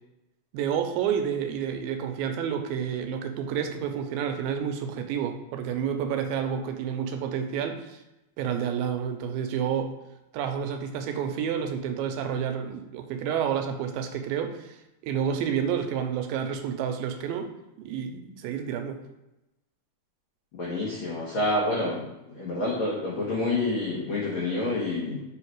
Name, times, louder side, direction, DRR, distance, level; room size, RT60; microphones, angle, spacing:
voice 1, 0.5-8.0 8.4-9.9 10.3-14.8 15.0-17.5 17.8-19.0, right 8 dB, 85° right, 6 dB, 2.3 m, -29 dB
voice 2, 20.6-25.2, left 2 dB, 90° left, -6 dB, 1.1 m, -28 dB
7.2 x 3.2 x 4.6 m, 0.93 s
omnidirectional pair, 4.3 m